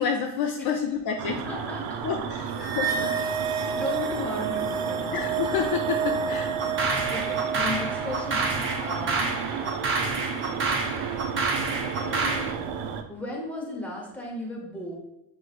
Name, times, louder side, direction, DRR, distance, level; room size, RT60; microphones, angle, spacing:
voice 1, 0.0-1.4 2.0-3.1 5.1-6.5, left 7 dB, 55° left, 3 dB, 0.5 m, -29 dB
sound 1, 1.2-13.0, right 7 dB, 80° right, 0.6 m, -33 dB
voice 2, 1.3-2.1 2.6-2.8 3.2-5.3 7.1-9.3 12.0-12.6 13.1-15.0, left 1 dB, 5° left, -2 dB, 0.9 m, -36 dB
sound 2, 2.6-9.2, right 6 dB, 50° right, 0.9 m, -31 dB
sound 3, 6.6-12.5, right 3 dB, 25° right, 0.6 m, -28 dB
5.7 x 3.1 x 2.4 m, 0.91 s
cardioid pair, 150°, 47 cm